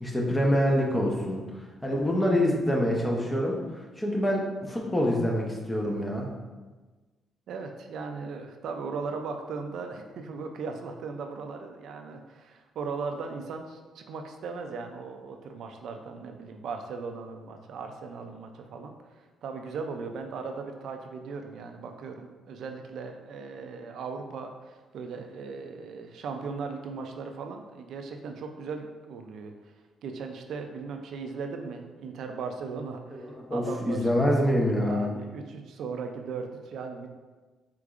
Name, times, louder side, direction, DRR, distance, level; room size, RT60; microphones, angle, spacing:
voice 1, 0.0-1.4 1.8-3.6 4.0-6.3 33.1-35.1, equal, 15° left, -1 dB, 0.8 m, -26 dB
voice 2, 7.5-29.7 30.0-34.1 34.8-37.1, right 4 dB, 70° right, 5 dB, 0.4 m, -38 dB
4.7 x 3.7 x 2.5 m, 1.3 s
cardioid pair, 90°, 0 cm